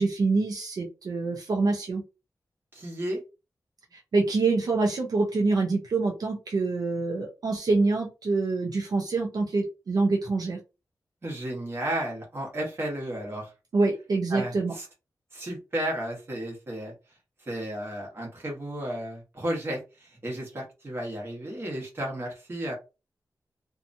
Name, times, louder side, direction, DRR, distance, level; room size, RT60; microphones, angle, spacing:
voice 1, 0.0-2.0 3.9-10.6 13.7-14.7, right 3 dB, 70° right, 0 dB, 0.6 m, -26 dB
voice 2, 2.7-3.2 11.2-13.5 14.3-14.9 15.3-16.9 17.4-22.7, right 1 dB, 35° right, -1 dB, 1.2 m, -33 dB
2.8 x 2.3 x 2.6 m, 0.29 s
wide cardioid pair, 145°, 7 cm